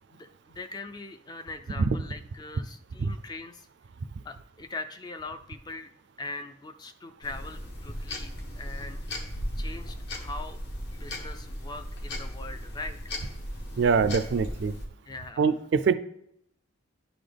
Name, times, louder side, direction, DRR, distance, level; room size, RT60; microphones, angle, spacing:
voice 1, 0.1-3.7 4.2-5.9 6.2-9.1 9.6-10.6 10.9-13.0 15.1-15.5, left 3 dB, 20° left, 8 dB, 0.3 m, -41 dB
sound 1, 7.2-14.9, equal, 55° left, 1.1 m, -36 dB
voice 2, 13.8-14.7 15.4-15.9, right 5 dB, 55° right, 13 dB, 0.3 m, -24 dB
11.0 x 4.0 x 3.4 m, 0.76 s
head